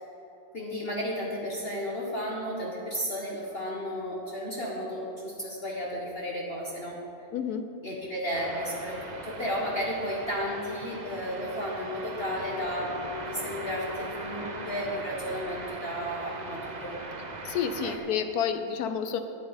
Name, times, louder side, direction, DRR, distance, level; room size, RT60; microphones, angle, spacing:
voice 1, 0.5-7.0 7.8-13.0 13.2-17.0 17.6-18.0, equal, 35° left, -4 dB, 1.4 m, -33 dB
voice 2, 7.3-7.7 17.4-19.2, left 7 dB, 70° left, 8 dB, 1.0 m, -29 dB
sound 1, 8.3-18.0, right 2 dB, 40° right, 0.6 m, -40 dB
sound 2, 11.3-15.2, left 3 dB, 70° right, 1.5 m, -42 dB
12.0 x 9.0 x 5.1 m, 2.9 s
omnidirectional pair, 2.0 m